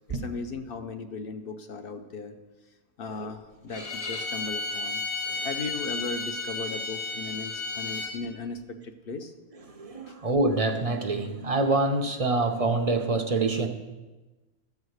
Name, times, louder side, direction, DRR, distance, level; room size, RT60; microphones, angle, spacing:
voice 1, 0.1-2.4 3.0-5.0 5.4-9.3 10.1-10.2, left 4 dB, 50° left, 7 dB, 0.8 m, -37 dB
Bowed string instrument, 3.7-8.2, left 3 dB, 75° left, 2.9 m, -33 dB
voice 2, 9.7-13.7, right 3 dB, 40° right, 5 dB, 0.5 m, -26 dB
13.0 x 4.8 x 7.9 m, 1.2 s
omnidirectional pair, 1.5 m